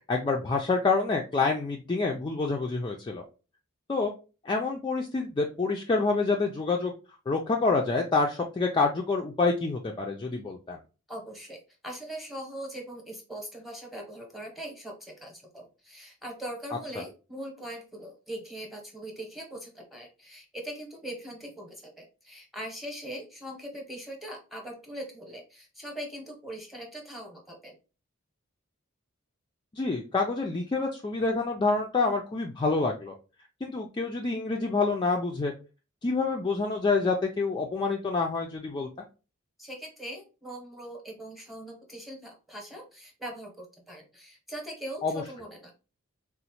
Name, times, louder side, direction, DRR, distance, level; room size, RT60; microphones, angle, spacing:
voice 1, 0.1-3.2 3.9-4.1 4.4-6.9 7.3-10.8 17.0-17.1 29.7-33.1 33.6-35.5 36.0-38.9 45.0-45.2, left 3 dB, 20° left, 0 dB, 0.3 m, -27 dB
voice 2, 11.1-11.6 11.8-27.7 39.6-45.7, right 1 dB, ahead, 1 dB, 0.9 m, -41 dB
3.9 x 2.0 x 2.8 m, 0.33 s
head